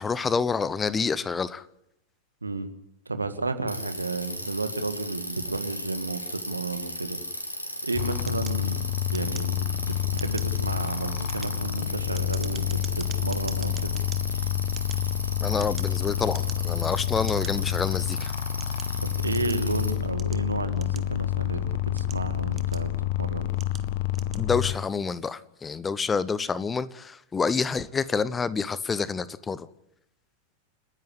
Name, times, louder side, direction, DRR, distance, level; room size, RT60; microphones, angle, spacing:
voice 1, 0.0-1.6 15.4-18.3 24.3-29.7, left 5 dB, 15° left, 18 dB, 0.9 m, -28 dB
voice 2, 3.1-7.2 7.8-9.6 9.9-14.0 19.0-21.6 21.9-22.9 23.2-23.5, right 3 dB, 80° right, 9 dB, 1.8 m, -32 dB
Bicycle, 3.7-19.9, equal, 85° left, 3.8 m, -36 dB
sound 1, 8.0-24.7, left 12 dB, 50° left, 1.3 m, -28 dB
sound 2, 8.3-9.8 10.1-10.6 11.1-14.2 14.7-16.0 16.3-16.8 17.3-17.5 18.2-19.7 20.2-21.4 21.8-23.0 23.6-23.9 24.1-24.5, right 8 dB, 25° right, 1.8 m, -44 dB
29.5 x 10.5 x 9.8 m, 0.82 s
figure-of-eight pair, 90°, 0 cm